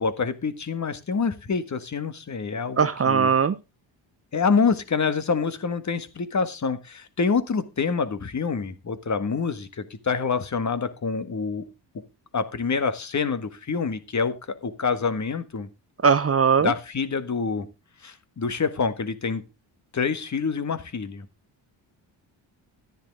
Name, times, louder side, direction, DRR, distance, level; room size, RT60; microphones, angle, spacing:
voice 1, 0.0-3.3 4.3-11.6 12.3-15.7 16.6-17.7 18.0-19.4 19.9-21.2, left 5 dB, 35° left, 11 dB, 1.7 m, -26 dB
voice 2, 2.8-3.5 16.0-16.7, right 6 dB, 30° right, 15 dB, 0.7 m, -19 dB
10.5 x 10.5 x 3.6 m, 0.27 s
cardioid pair, 75°, 46 cm